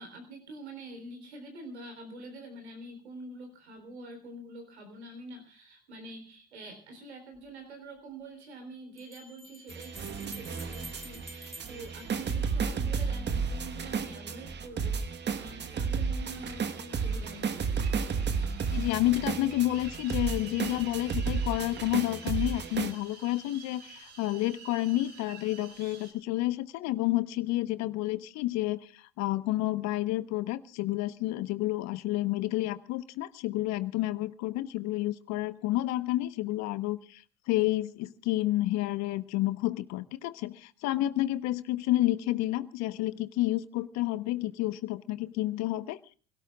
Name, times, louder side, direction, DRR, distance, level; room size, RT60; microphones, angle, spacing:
voice 1, 0.0-17.8, right 2 dB, 85° right, 4 dB, 3.8 m, -46 dB
Bell, 7.3-7.4 9.0-12.9, equal, ahead, 1.2 m, -49 dB
sound 1, 9.7-22.9, right 5 dB, 30° right, 1.4 m, -32 dB
sound 2, 16.2-26.1, right 5 dB, 50° right, 4.7 m, -50 dB
voice 2, 18.7-37.2 37.5-46.1, left 16 dB, 55° left, 14 dB, 1.1 m, -30 dB
29.0 x 17.5 x 2.4 m, 0.37 s
hypercardioid pair, 65°, 32 cm